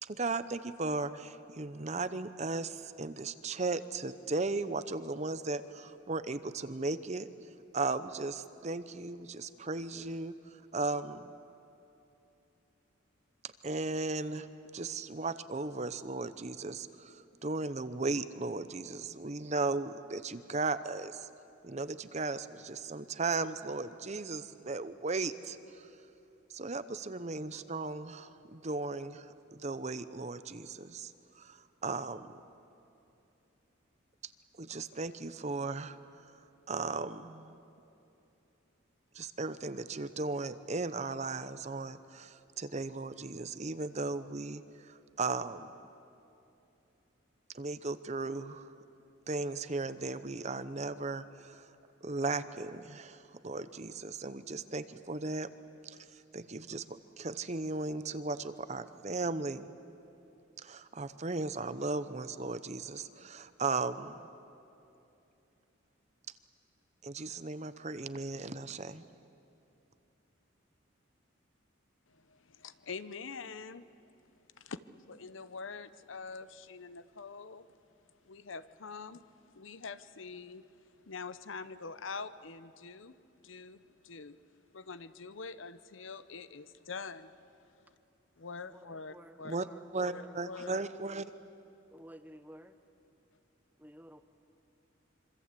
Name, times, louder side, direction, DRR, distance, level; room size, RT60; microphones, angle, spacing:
voice 1, 0.0-7.3 7.7-11.3 13.4-14.5 14.7-21.3 21.6-25.9 26.5-32.3 34.6-36.0 36.7-37.6 39.1-45.7 47.5-48.7 49.3-51.7 52.0-55.5 55.8-56.0 56.3-59.7 60.6-64.3 67.0-69.0 89.4-89.7 89.9-91.2, right 3 dB, 35° right, 13 dB, 0.7 m, -36 dB
voice 2, 72.1-73.8 74.6-74.8 75.1-77.7 78.2-79.3 79.5-80.6 81.1-83.1 83.4-84.4 84.7-87.4 88.4-89.6 90.0-90.8, left 4 dB, 70° left, 14 dB, 0.8 m, -45 dB
voice 3, 88.6-90.8 91.9-92.8 93.8-94.2, equal, 10° right, 9 dB, 1.0 m, -54 dB
26.5 x 24.5 x 8.4 m, 2.8 s
head